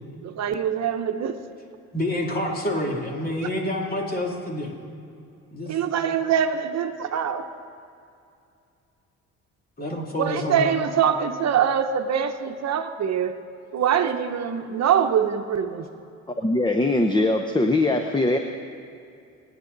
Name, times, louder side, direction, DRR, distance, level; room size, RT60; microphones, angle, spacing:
voice 1, 0.2-1.4 5.7-7.4 10.2-13.3 13.7-15.8, right 8 dB, 60° right, 7 dB, 0.9 m, -24 dB
voice 2, 1.9-4.8 5.5-5.8 9.8-10.7, left 1 dB, 30° left, 0 dB, 2.6 m, -28 dB
voice 3, 16.4-18.4, left 2 dB, 15° left, 5 dB, 0.8 m, -21 dB
25.5 x 9.6 x 4.0 m, 2.5 s
cardioid pair, 90°, 30 cm